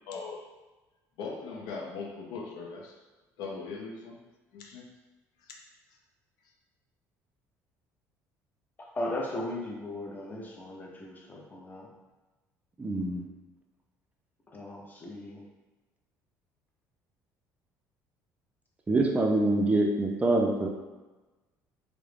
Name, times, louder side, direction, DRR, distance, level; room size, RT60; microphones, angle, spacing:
voice 1, 0.1-0.5 1.2-3.0 3.4-4.2 4.5-4.9 5.4-5.5, left 4 dB, 80° left, 0 dB, 0.5 m, -39 dB
voice 2, 8.9-11.9 14.5-15.4, left 1 dB, 25° left, -1 dB, 0.6 m, -37 dB
voice 3, 12.8-13.2 18.9-20.7, right 2 dB, 20° right, 0 dB, 0.3 m, -25 dB
2.3 x 2.0 x 3.2 m, 1.2 s
cardioid pair, 105°, 7 cm